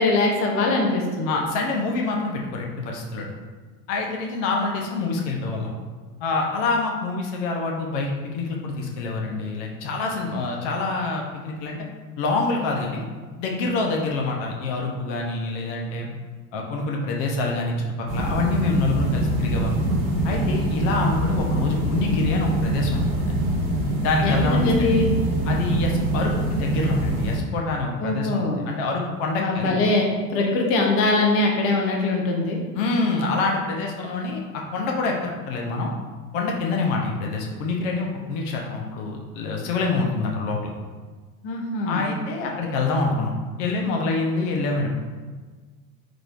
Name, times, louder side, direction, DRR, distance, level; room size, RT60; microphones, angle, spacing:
voice 1, 0.0-1.4 24.2-25.1 28.0-28.6 29.4-30.0 30.3-32.6 41.4-42.1, left 2 dB, 30° left, 0 dB, 0.6 m, -22 dB
voice 2, 1.3-3.3 3.9-5.7 6.2-11.8 12.2-13.0 13.4-16.1 16.5-19.8 20.2-23.3 24.0-25.0 25.5-29.8 32.7-35.9 36.3-40.7 41.8-43.3 43.6-44.9, left 3 dB, 60° left, 0 dB, 0.8 m, -26 dB
sound 1, 18.1-27.4, right 1 dB, 70° right, 1.1 m, -24 dB
3.8 x 3.2 x 2.4 m, 1.4 s
hypercardioid pair, 80°, 43 cm